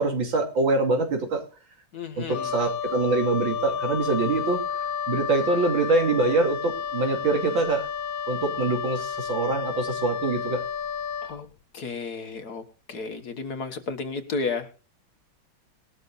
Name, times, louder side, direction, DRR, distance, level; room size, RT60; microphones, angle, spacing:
voice 1, 0.0-1.4 2.2-4.6 5.1-7.8 8.3-10.6, right 3 dB, 75° right, 4 dB, 3.6 m, -24 dB
voice 2, 1.9-2.5 11.2-11.5 11.7-12.6 12.9-14.7, left 4 dB, 55° left, 8 dB, 1.9 m, -32 dB
Wind instrument woodwind instrument, 2.3-11.4, left 7 dB, 75° left, 1.5 m, -31 dB
20.0 x 12.5 x 2.6 m, 0.36 s
omnidirectional pair, 2.1 m